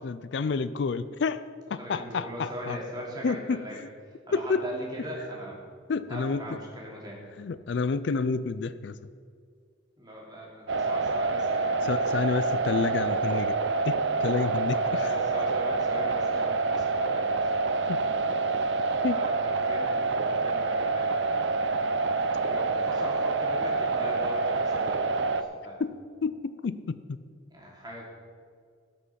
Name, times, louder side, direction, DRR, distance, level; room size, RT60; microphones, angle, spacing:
voice 1, 0.0-1.4 1.7-2.8 3.2-3.6 4.3-4.6 5.9-6.6 7.4-9.0 11.8-13.5 13.8-15.1 17.9-18.0 19.0-19.2 25.8-25.9 26.2-27.2, left 4 dB, 65° left, 14 dB, 0.4 m, -29 dB
voice 2, 1.8-3.9 4.3-5.6 6.1-7.2 10.0-11.9 12.1-12.6 14.4-17.9 19.1-21.4 22.2-25.8 27.5-28.1, equal, 20° right, -3 dB, 2.8 m, -40 dB
sound 1, 10.7-25.4, right 3 dB, 65° right, 0.6 m, -27 dB
17.5 x 6.1 x 5.8 m, 2.1 s
head